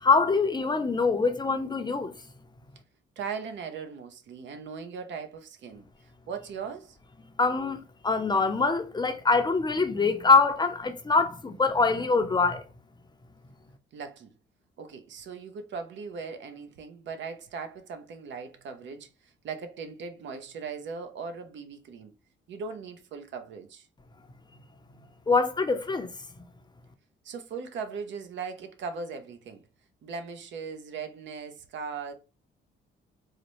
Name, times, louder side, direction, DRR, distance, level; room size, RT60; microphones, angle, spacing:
voice 1, 0.0-2.1 7.4-12.6 25.3-26.1, left 4 dB, 20° left, 0.5 m, -24 dB
voice 2, 3.2-7.0 13.9-14.3 14.8-22.1 22.5-23.9 27.2-29.6 30.0-32.1, right 5 dB, 65° right, 0.7 m, -39 dB
4.0 x 2.1 x 3.0 m
cardioid pair, 90°, 20 cm